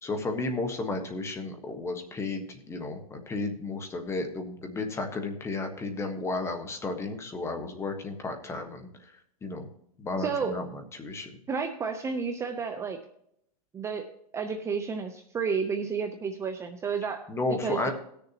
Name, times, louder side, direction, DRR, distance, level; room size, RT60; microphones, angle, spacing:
voice 1, 0.0-9.1 9.4-9.7 10.0-11.4 17.3-17.9, left 3 dB, 15° left, 5 dB, 1.3 m, -33 dB
voice 2, 10.2-10.6 11.5-13.0 13.7-17.9, right 5 dB, 15° right, 6 dB, 0.7 m, -31 dB
18.5 x 6.8 x 2.9 m, 0.73 s
supercardioid pair, 145°, 19 cm